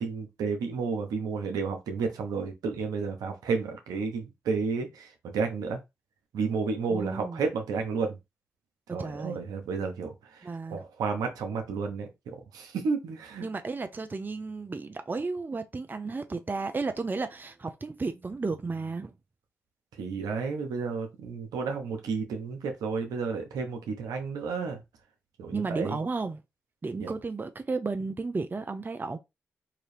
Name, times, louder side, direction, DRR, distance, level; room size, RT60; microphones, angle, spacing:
voice 1, 0.0-5.8 6.3-8.2 8.9-13.5 20.0-24.8 25.4-26.0 27.0-27.1, right 5 dB, 80° right, 0.9 m, -32 dB
voice 2, 6.9-7.4 8.9-9.4 10.4-10.8 13.4-19.1 25.5-26.4 26.8-29.2, right 3 dB, 30° right, 0.6 m, -33 dB
3.8 x 2.7 x 3.3 m
supercardioid pair, 45°, 6 cm